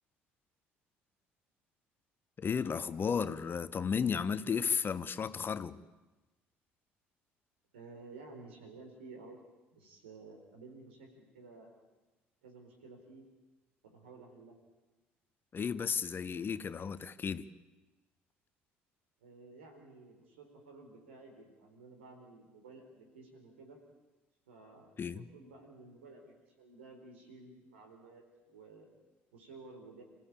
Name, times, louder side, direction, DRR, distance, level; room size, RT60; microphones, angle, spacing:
voice 1, 2.4-5.8 15.5-17.5 25.0-25.3, left 6 dB, 35° left, 1.0 m, -34 dB
voice 2, 7.7-9.4 9.7-11.8 12.4-13.2 13.8-14.5 19.2-23.8 24.5-28.9 29.3-30.0, right 3 dB, 75° right, 4.4 m, -53 dB
27.0 x 15.5 x 8.7 m
figure-of-eight pair, 55°, 6 cm